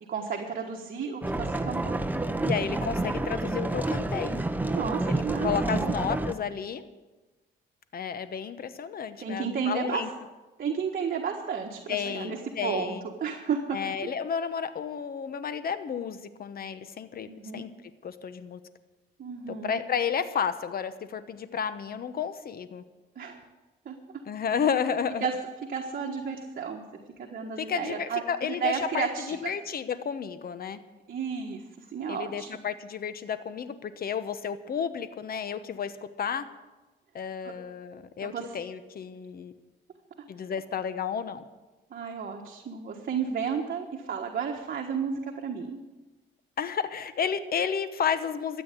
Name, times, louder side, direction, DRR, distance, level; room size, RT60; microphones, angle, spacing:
voice 1, 0.1-2.0 4.7-6.0 9.2-10.1 10.6-13.8 17.3-17.7 19.2-19.8 23.1-23.4 23.8-24.0 25.2-25.3 25.7-26.8 27.2-29.5 31.1-32.5 37.4-37.6 38.2-38.5 41.9-45.8, right 6 dB, 45° right, 1 dB, 1.5 m, -32 dB
sound 1, 1.2-6.3, right 2 dB, 10° right, 0.9 m, -29 dB
voice 2, 2.4-4.3 5.1-6.8 7.9-10.1 11.9-13.0 13.7-17.7 18.0-18.6 19.5-22.8 24.3-25.3 27.6-30.8 32.1-36.5 37.1-39.5 40.3-41.5 46.6-48.6, left 7 dB, 50° left, 12 dB, 1.0 m, -32 dB
13.0 x 8.6 x 8.5 m, 1.2 s
cardioid pair, 90°, 20 cm